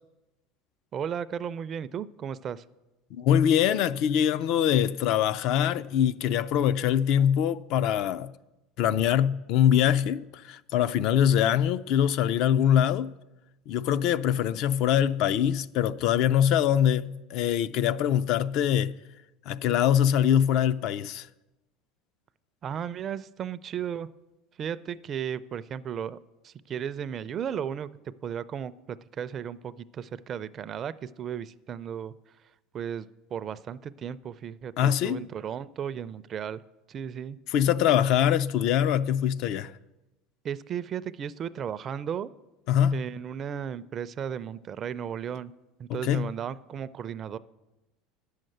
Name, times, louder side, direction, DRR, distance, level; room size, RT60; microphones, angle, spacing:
voice 1, 0.9-2.6 22.6-24.1 24.6-26.2 26.4-27.9 28.2-32.1 32.7-36.6 36.9-37.4 40.4-42.3 42.9-45.5 45.8-47.4, right 8 dB, 35° right, 0.4 m, -35 dB
voice 2, 3.1-8.3 8.8-13.1 13.7-18.9 19.5-21.3 34.8-35.2 37.5-39.7 42.7-43.0 45.9-46.3, left 10 dB, 55° left, 0.4 m, -23 dB
10.5 x 6.5 x 7.8 m
supercardioid pair, 130°, 0 cm